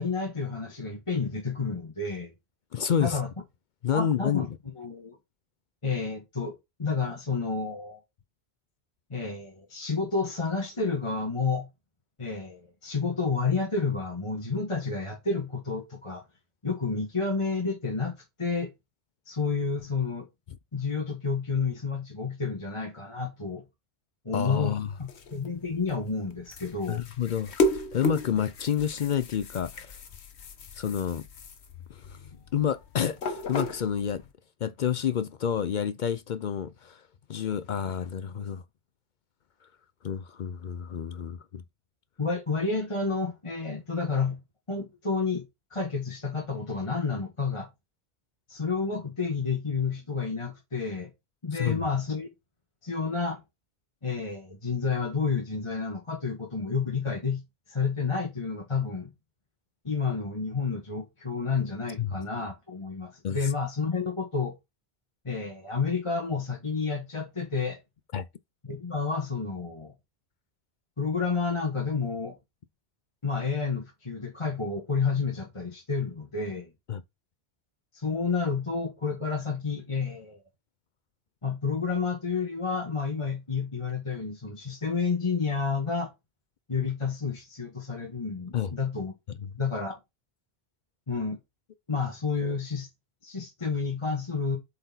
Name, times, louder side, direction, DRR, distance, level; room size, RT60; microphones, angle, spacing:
voice 1, 0.0-2.3 3.0-3.3 3.9-4.4 4.8-5.2 5.8-8.0 9.1-11.7 12.2-16.2 16.6-18.7 19.3-20.3 20.7-23.6 24.2-24.7 25.0-27.0 42.2-44.4 44.7-45.4 45.7-47.7 48.5-51.1 51.4-52.3 52.8-53.4 54.0-57.4 57.7-59.1 59.8-64.5 65.2-67.8 68.7-69.9 71.0-72.3 73.2-76.7 77.9-80.4 81.4-86.1 86.7-89.1 89.6-90.0 91.1-91.4 91.9-92.9 93.2-94.6, left 4 dB, 30° left, 1.4 m, -30 dB
voice 2, 2.7-3.2 3.8-4.5 24.3-24.9 26.9-27.5 27.9-29.9 30.8-31.3 31.9-32.2 32.5-34.2 34.6-37.0 37.3-38.6 40.0-41.6 51.5-51.8 62.0-62.1 63.2-63.5 68.1-68.3 76.9-77.0 88.5-88.7 89.4-89.5, left 8 dB, 55° left, 0.6 m, -29 dB
sound 1, 24.7-34.3, left 3 dB, 80° left, 1.3 m, -34 dB
7.7 x 4.3 x 4.0 m
omnidirectional pair, 1.1 m